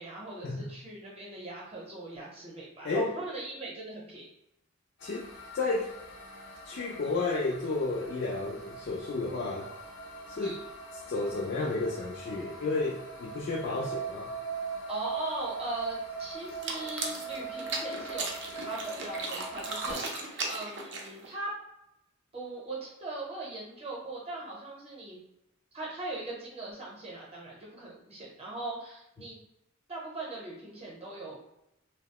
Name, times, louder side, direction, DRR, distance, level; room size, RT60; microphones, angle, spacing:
voice 1, 0.0-4.3 10.4-10.6 14.9-18.3 18.5-21.5 22.3-25.2 25.7-29.4 29.9-31.4, right 2 dB, 30° right, -4 dB, 0.8 m, -40 dB
sound 1, 5.0-19.9, right 3 dB, 80° left, 0.7 m, -41 dB
voice 2, 5.5-5.9 6.7-9.7 10.3-10.5 11.1-14.3, left 3 dB, 55° left, -1 dB, 0.3 m, -32 dB
sound 2, 16.5-21.3, right 3 dB, 60° right, 0.5 m, -37 dB
2.8 x 2.0 x 2.8 m, 0.86 s
head